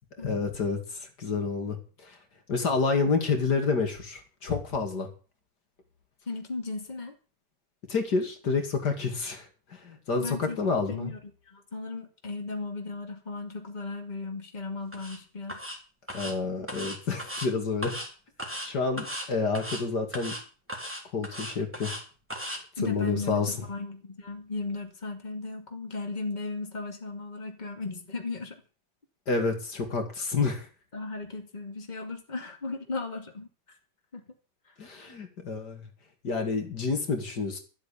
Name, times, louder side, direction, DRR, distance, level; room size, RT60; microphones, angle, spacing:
voice 1, 0.2-1.8 2.0-2.2 2.5-5.1 7.9-9.5 9.7-11.1 16.1-17.9 18.6-20.3 21.1-21.9 22.4-23.5 29.3-30.7 34.8-35.8 36.2-37.6, left 4 dB, 65° left, 4 dB, 3.0 m, -29 dB
voice 2, 6.3-7.1 10.2-10.6 10.9-15.6 22.8-28.6 30.9-33.5 34.1-34.2, left 3 dB, 25° left, 4 dB, 2.5 m, -36 dB
sound 1, 14.9-15.2 15.5-15.8 16.1-16.3 16.7-17.5 17.8-18.1 18.4-18.7 19.0-19.3 19.5-19.8 20.1-20.4 20.7-22.0 22.3-22.6, equal, 5° right, 3.5 m, -36 dB
13.0 x 8.3 x 8.5 m, 0.37 s
omnidirectional pair, 1.9 m